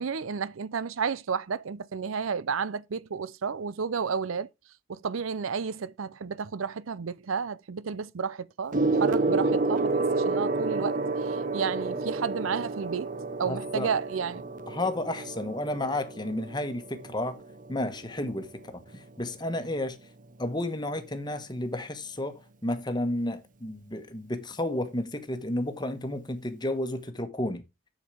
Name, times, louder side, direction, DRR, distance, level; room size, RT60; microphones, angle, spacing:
voice 1, 0.0-4.5 4.9-13.1 13.4-14.4, right 6 dB, 80° right, 0.5 m, -32 dB
Gong, 8.7-18.5 19.4-19.7, right 3 dB, 40° right, 0.9 m, -30 dB
voice 2, 13.4-13.9 14.7-17.4 17.7-20.0 20.4-27.6, left 1 dB, 20° left, 1.2 m, -32 dB
7.3 x 7.3 x 4.8 m
head